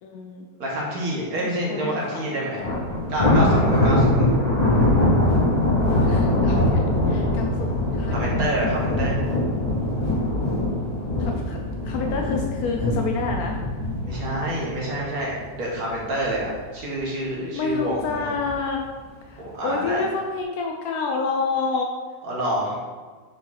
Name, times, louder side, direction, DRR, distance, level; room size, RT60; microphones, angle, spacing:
voice 1, 0.0-0.5 1.4-2.2 2.6-2.9 6.0-6.8 7.1-8.3 11.2-11.6 11.8-13.6 17.5-18.8 19.3-21.9, left 4 dB, 80° left, 1 dB, 1.1 m, -28 dB
voice 2, 0.6-2.6 3.1-4.3 8.1-9.2 14.0-15.3 15.6-16.5 16.7-18.3 19.4-20.0 22.2-22.8, right 1 dB, 75° right, -4 dB, 1.9 m, -27 dB
Thunder, 2.6-15.9 16.3-16.6 17.0-17.1 17.9-18.5, left 1 dB, 25° left, 1.9 m, -22 dB
4.9 x 4.8 x 4.0 m, 1.4 s
omnidirectional pair, 1.6 m